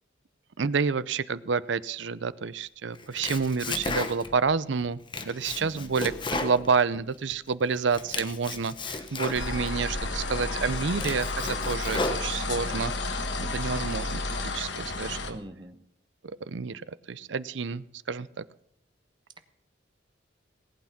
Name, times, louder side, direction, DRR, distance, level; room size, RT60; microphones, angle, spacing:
voice 1, 0.6-15.4 16.4-16.8 17.1-18.4, right 5 dB, 70° right, 17 dB, 0.6 m, -29 dB
Domestic sounds home sounds, 2.9-4.5 4.8-7.4 7.7-9.7 10.3-10.4 10.8-12.7, left 3 dB, 25° left, 1.0 m, -34 dB
voice 2, 5.6-5.9 15.3-15.8, right 1 dB, 25° right, 9 dB, 1.1 m, -43 dB
sound 1, 9.3-15.3, left 3 dB, 65° left, 1.4 m, -31 dB
19.0 x 8.8 x 5.8 m, 0.76 s
head